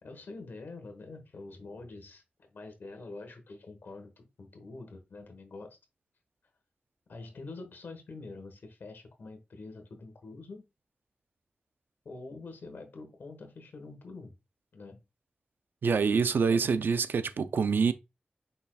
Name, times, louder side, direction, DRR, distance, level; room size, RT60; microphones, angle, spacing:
voice 1, 0.0-5.8 7.1-10.6 12.0-14.3 14.7-15.0 16.5-16.8, left 3 dB, 85° left, 1.2 m, -46 dB
voice 2, 15.8-17.9, right 5 dB, 85° right, 0.4 m, -26 dB
5.4 x 4.2 x 2.3 m
cardioid pair, 50°, 3 cm